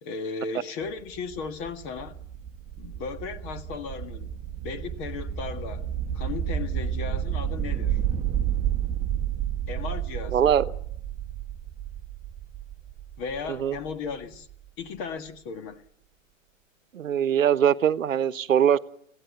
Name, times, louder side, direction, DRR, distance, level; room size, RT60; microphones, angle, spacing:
voice 1, 0.0-2.2 2.8-4.4 4.6-5.9 6.1-8.0 9.7-10.6 13.2-14.5 14.8-15.8, left 5 dB, 30° left, 9 dB, 1.8 m, -36 dB
sound 1, 0.8-14.5, right 9 dB, 15° right, 1.2 m, -31 dB
voice 2, 10.3-10.7 13.5-13.8 16.9-18.8, right 9 dB, 75° right, 14 dB, 1.1 m, -22 dB
22.0 x 16.0 x 9.4 m, 0.72 s
hypercardioid pair, 125°, 39 cm